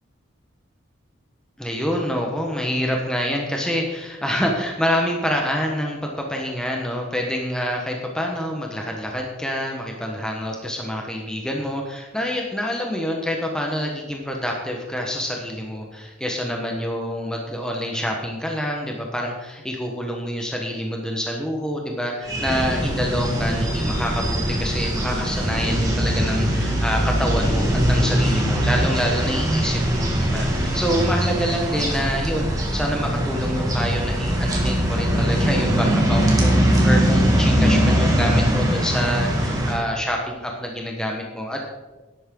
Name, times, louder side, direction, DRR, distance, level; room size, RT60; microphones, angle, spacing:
voice 1, 1.6-41.7, equal, 5° left, 0 dB, 1.1 m, -27 dB
sound 1, 22.2-39.7, equal, 20° right, 1.9 m, -21 dB
12.5 x 10.5 x 3.8 m, 1.2 s
head